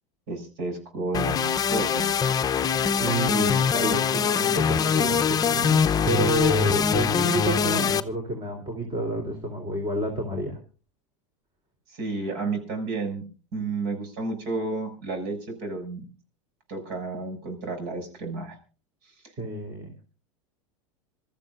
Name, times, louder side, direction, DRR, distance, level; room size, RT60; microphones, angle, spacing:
voice 1, 0.3-2.1 11.9-13.2 13.5-16.1 16.7-18.6, right 3 dB, 60° right, 6 dB, 6.5 m, -31 dB
sound 1, 1.1-8.0, left 6 dB, 25° left, 0.7 m, -23 dB
voice 2, 3.0-10.6 19.4-19.9, right 1 dB, 30° right, 3 dB, 3.5 m, -29 dB
26.5 x 13.5 x 2.5 m, 0.35 s
hypercardioid pair, 100°, 16 cm